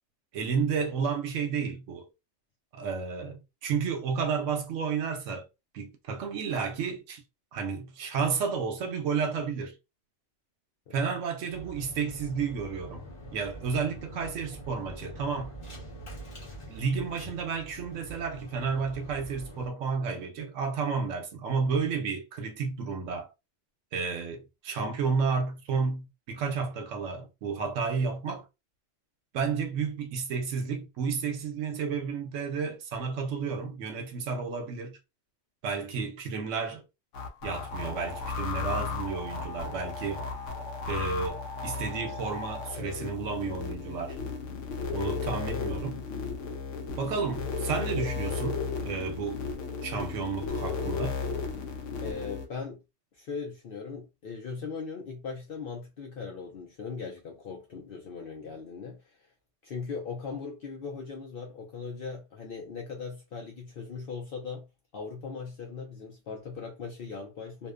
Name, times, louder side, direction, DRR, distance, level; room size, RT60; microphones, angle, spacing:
voice 1, 0.3-2.1 2.7-5.5 5.7-7.2 7.5-9.7 10.9-13.1 13.3-15.6 16.7-23.3 23.9-28.5 29.3-35.0 35.6-36.8 37.4-40.2 40.9-44.2 44.9-46.0 47.0-49.4 49.8-51.2, right 5 dB, 85° right, 1.0 m, -31 dB
sound 1, 11.5-19.7, right 1 dB, 25° left, 1.0 m, -45 dB
sound 2, 37.1-52.5, left 4 dB, 85° left, 1.0 m, -34 dB
voice 2, 52.0-52.8 53.1-59.2 59.6-64.7 64.9-67.7, left 5 dB, 55° left, 0.7 m, -39 dB
2.6 x 2.1 x 2.4 m
omnidirectional pair, 1.2 m